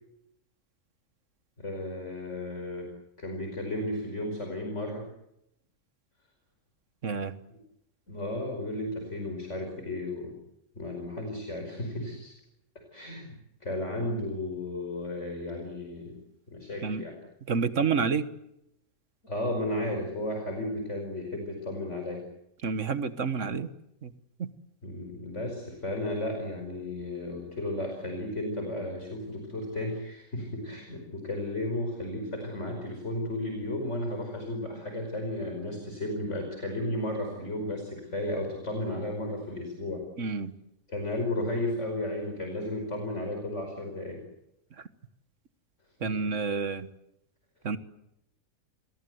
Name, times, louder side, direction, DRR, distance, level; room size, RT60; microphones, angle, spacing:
voice 1, 1.6-2.9 3.2-5.0 7.5-7.6 8.1-10.4 10.8-12.3 12.9-16.2 16.5-17.2 19.2-22.2 24.8-40.0 40.9-44.2 46.0-46.2, left 1 dB, 55° left, 3 dB, 5.5 m, -34 dB
voice 2, 7.0-7.3 16.8-17.0 17.5-18.3 22.6-23.7 24.0-24.1 24.4-24.5 40.2-40.5 46.0-46.9 47.6-47.8, right 5 dB, 60° right, 12 dB, 1.7 m, -29 dB
29.0 x 22.0 x 8.0 m, 0.82 s
omnidirectional pair, 1.5 m